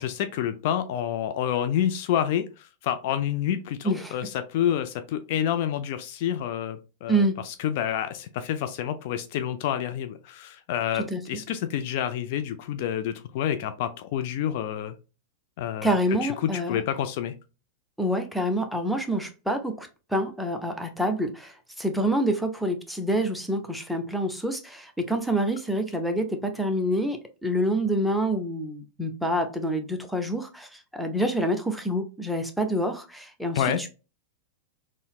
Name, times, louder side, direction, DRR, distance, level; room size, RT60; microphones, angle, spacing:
voice 1, 0.0-14.9 15.6-17.3 33.6-33.8, left 10 dB, 55° left, 0.3 m, -28 dB
voice 2, 3.8-4.3 7.1-7.3 11.1-11.4 15.8-16.8 18.0-33.9, right 1 dB, ahead, 0.6 m, -27 dB
3.9 x 2.0 x 2.2 m
hypercardioid pair, 100°, 0 cm